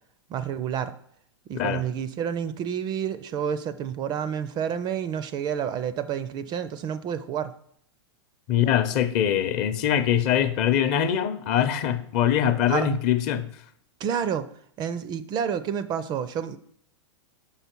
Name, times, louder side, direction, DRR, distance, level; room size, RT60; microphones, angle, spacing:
voice 1, 0.3-1.0 1.5-7.5 12.7-12.9 14.0-14.5 14.8-16.6, right 8 dB, 30° right, 0.4 m, -29 dB
voice 2, 8.5-13.5, left 10 dB, 45° left, 0.7 m, -23 dB
6.5 x 5.7 x 4.5 m
hypercardioid pair, 120°, 15 cm